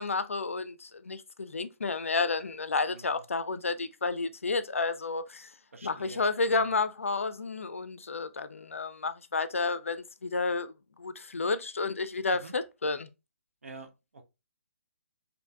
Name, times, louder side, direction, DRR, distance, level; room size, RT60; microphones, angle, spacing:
voice 1, 0.0-5.5 5.8-10.7 11.0-13.1, left 4 dB, 65° left, 0.4 m, -31 dB
voice 2, 2.9-3.2 5.7-6.7 12.3-12.5 13.6-14.2, right 3 dB, 65° right, 0.7 m, -48 dB
4.4 x 2.6 x 2.2 m
figure-of-eight pair, 135°, 8 cm